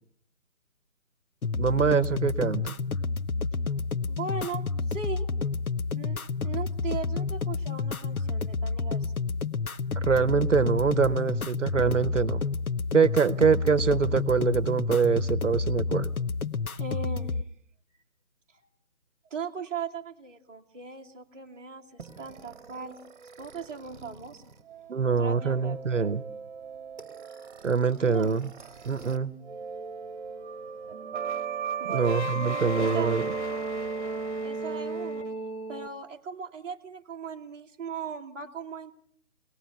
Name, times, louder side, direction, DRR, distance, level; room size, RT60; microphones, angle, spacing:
sound 1, 1.4-17.4, left 4 dB, 85° left, 1.0 m, -30 dB
voice 1, 1.6-2.8 10.1-12.4 12.9-16.1 24.9-26.2 27.6-28.5 28.8-29.3 31.9-33.3, right 5 dB, 60° right, 14 dB, 1.0 m, -24 dB
voice 2, 4.1-5.3 5.9-9.4 16.8-17.4 19.2-24.4 25.2-25.8 28.0-28.4 31.8-32.2 32.8-33.2 34.4-35.3 35.7-38.9, right 5 dB, 10° right, -6 dB, 1.6 m, -38 dB
sound 2, 22.0-29.2 29.4-35.9, right 4 dB, 35° right, 1.6 m, -36 dB
23.5 x 19.5 x 6.0 m, 0.64 s
figure-of-eight pair, 160°, 42 cm